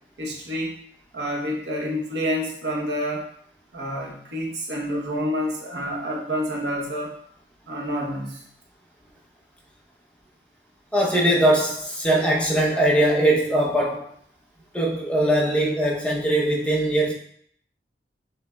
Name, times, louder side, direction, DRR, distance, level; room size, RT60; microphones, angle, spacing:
voice 1, 0.2-0.7 1.1-3.2 3.7-7.1 7.7-8.4, equal, 80° right, -1 dB, 0.9 m, -28 dB
voice 2, 10.9-14.1 14.7-17.1, right 1 dB, 5° left, -3 dB, 0.7 m, -21 dB
6.7 x 3.3 x 2.3 m, 0.65 s
head